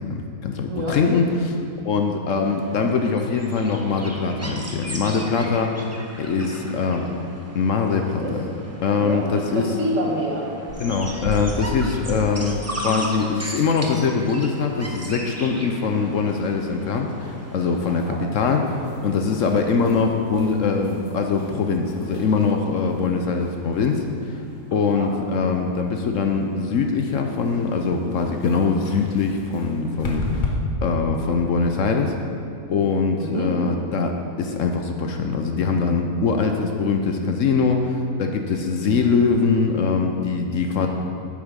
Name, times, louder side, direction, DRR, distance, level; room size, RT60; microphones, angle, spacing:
voice 1, 0.1-1.6 1.8-5.7 6.2-7.1 7.5-8.2 8.8-9.7 10.8-18.7 19.0-24.4 24.7-30.5 30.8-32.1 32.7-40.9, left 4 dB, 60° left, 4 dB, 0.9 m, -22 dB
voice 2, 0.7-1.0 6.4-6.6 6.8-7.2 7.7-8.3 8.9-10.8 17.9-18.2 24.7-25.1 33.2-33.5 40.8-40.9, right 1 dB, 55° right, -2 dB, 1.6 m, -29 dB
sound 1, 2.4-18.0, right 1 dB, 15° right, 0.5 m, -37 dB
sound 2, 10.7-30.5, left 3 dB, 35° left, 0.9 m, -37 dB
8.6 x 7.1 x 5.1 m, 2.5 s
omnidirectional pair, 1.7 m